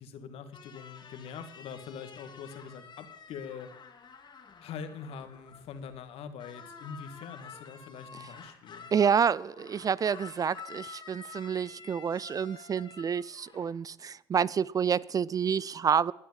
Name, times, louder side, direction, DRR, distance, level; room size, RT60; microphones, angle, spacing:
voice 1, 0.0-3.7 4.6-8.9, left 6 dB, 60° left, 2.0 m, -43 dB
sound 1, 0.5-6.1 6.4-13.8, left 6 dB, 40° left, 2.8 m, -50 dB
voice 2, 8.9-16.1, right 7 dB, 30° right, 0.4 m, -28 dB
17.5 x 10.0 x 7.4 m
hypercardioid pair, 60°, 12 cm